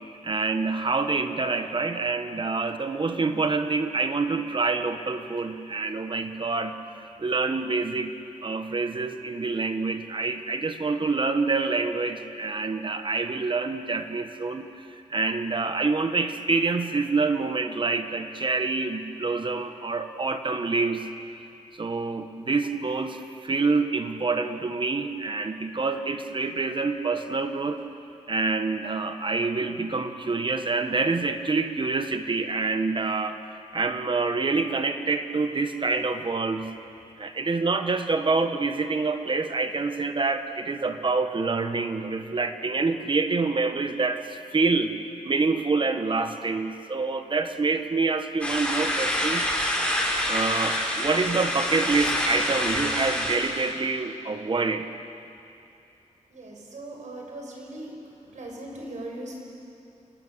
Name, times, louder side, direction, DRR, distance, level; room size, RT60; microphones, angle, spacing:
voice 1, 0.2-6.7 7.2-8.1 8.4-14.7 15.1-21.1 21.8-27.8 28.3-33.4 33.7-36.7 37.2-44.9 45.2-49.5 50.3-54.9, right 4 dB, 40° right, 7 dB, 1.5 m, -26 dB
sound 1, 48.4-53.7, left 1 dB, 10° left, 5.3 m, -27 dB
voice 2, 56.3-57.9 58.3-59.4, right 1 dB, 75° right, 0 dB, 5.8 m, -39 dB
29.0 x 19.0 x 6.9 m, 2.7 s
wide cardioid pair, 105°, 12 cm